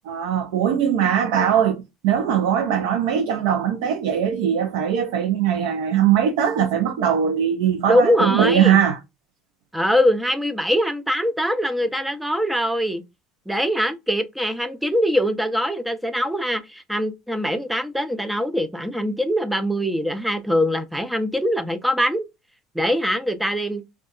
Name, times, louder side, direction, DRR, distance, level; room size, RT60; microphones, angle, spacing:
voice 1, 0.1-9.0, right 9 dB, 80° right, 0.4 m, -20 dB
voice 2, 7.9-8.8 9.7-13.0 13.5-22.2 22.7-23.8, equal, 5° right, 0.3 m, -22 dB
2.7 x 2.2 x 2.3 m
cardioid pair, 160°, 0 cm